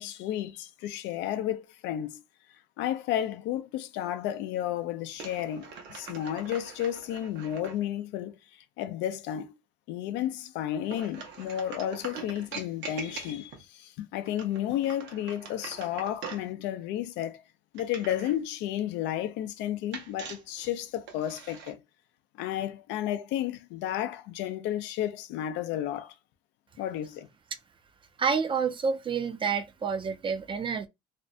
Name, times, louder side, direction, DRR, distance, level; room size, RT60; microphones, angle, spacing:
voice 1, 0.0-2.2 2.8-8.4 8.8-9.5 9.9-17.4 17.7-21.8 22.4-26.1 26.8-27.3, left 11 dB, 85° left, 0.4 m, -32 dB
sound 1, 5.1-7.8 10.8-13.6 14.2-16.5 17.7-18.4 19.9-21.7, right 5 dB, 80° right, 0.8 m, -43 dB
voice 2, 28.2-30.9, right 6 dB, 30° right, 0.3 m, -28 dB
2.5 x 2.1 x 2.5 m
cardioid pair, 100°, 18 cm